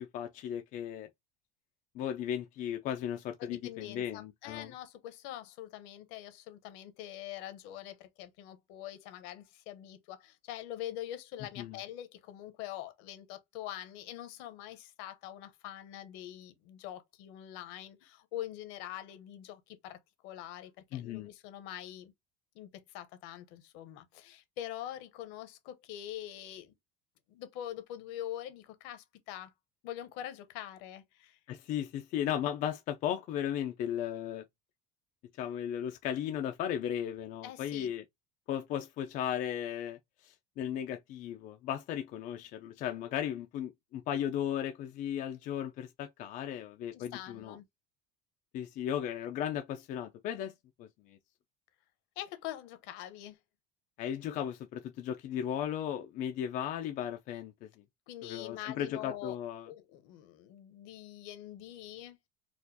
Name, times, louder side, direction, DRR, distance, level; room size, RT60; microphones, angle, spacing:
voice 1, 0.1-1.1 1.9-4.7 11.6-11.8 20.9-21.3 31.5-34.4 35.4-38.0 38.5-40.0 40.2-47.6 48.5-50.5 50.8-51.2 54.0-57.7 58.2-59.7, left 10 dB, 40° left, 0.4 m, -36 dB
voice 2, 3.4-22.1 22.5-26.7 27.3-29.5 29.8-31.4 37.4-37.9 46.9-47.6 52.2-53.4 58.1-59.4 59.7-62.2, left 12 dB, 70° left, 0.8 m, -44 dB
4.3 x 2.4 x 2.6 m
cardioid pair, 155°, 20 cm